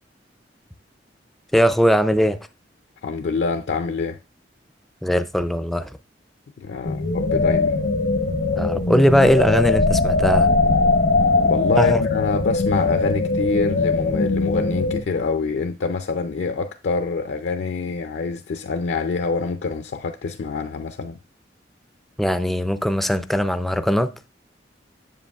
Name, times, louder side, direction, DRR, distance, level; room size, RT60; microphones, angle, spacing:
voice 1, 1.5-2.4 5.0-5.9 8.6-10.5 11.8-12.0 22.2-24.1, equal, ahead, 0.3 m, -19 dB
voice 2, 3.0-4.2 6.6-7.8 11.4-21.2, left 4 dB, 70° left, 0.4 m, -26 dB
sound 1, 6.8-15.0, left 3 dB, 85° left, 0.8 m, -20 dB
7.5 x 7.3 x 2.3 m
head